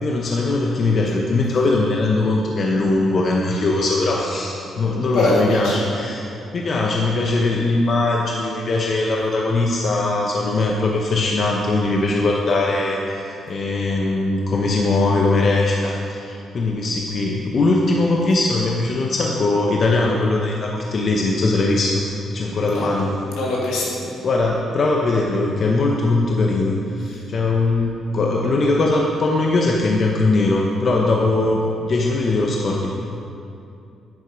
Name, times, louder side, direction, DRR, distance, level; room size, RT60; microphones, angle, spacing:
voice 1, 0.0-6.3 6.5-22.1 22.3-23.1 24.2-32.9, left 2 dB, 50° left, -1 dB, 1.0 m, -20 dB
voice 2, 5.1-5.8 22.5-22.9 23.3-23.9, left 2 dB, 85° left, -5 dB, 2.9 m, -22 dB
9.9 x 9.2 x 5.2 m, 2.6 s
cardioid pair, 90°, 0 cm